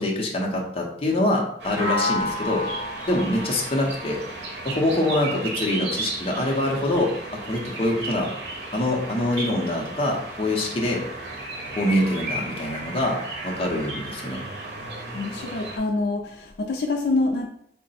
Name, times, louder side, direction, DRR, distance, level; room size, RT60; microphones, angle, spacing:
voice 1, 0.0-2.6 3.1-4.2 4.6-7.1 7.4-8.3 8.7-11.0 11.8-13.2 13.4-14.4, left 1 dB, 35° left, -1 dB, 0.7 m, -24 dB
sound 1, 1.6-15.8, right 2 dB, 80° right, 0.8 m, -35 dB
sound 2, 1.8-5.7, left 2 dB, 40° right, 1.3 m, -31 dB
voice 2, 15.1-17.5, left 3 dB, 70° left, 3 dB, 0.4 m, -26 dB
3.7 x 2.1 x 4.1 m, 0.68 s
head